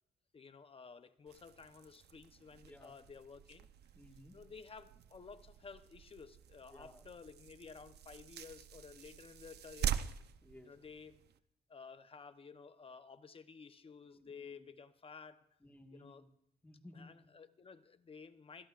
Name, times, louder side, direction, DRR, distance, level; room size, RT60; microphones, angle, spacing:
voice 1, 0.3-3.7 4.3-10.0 10.7-11.2 11.7-15.4 15.9-16.3 16.9-18.7, left 5 dB, 35° left, 11 dB, 0.8 m, -54 dB
sound 1, 1.3-11.4, right 9 dB, 80° right, 0.8 m, -45 dB
voice 2, 3.9-4.3 6.6-7.1 10.4-10.7 14.1-14.7 15.6-16.3 16.6-17.3, left 1 dB, 10° left, 3 dB, 1.7 m, -57 dB
27.0 x 17.0 x 2.5 m, 0.77 s
cardioid pair, 120°, 17 cm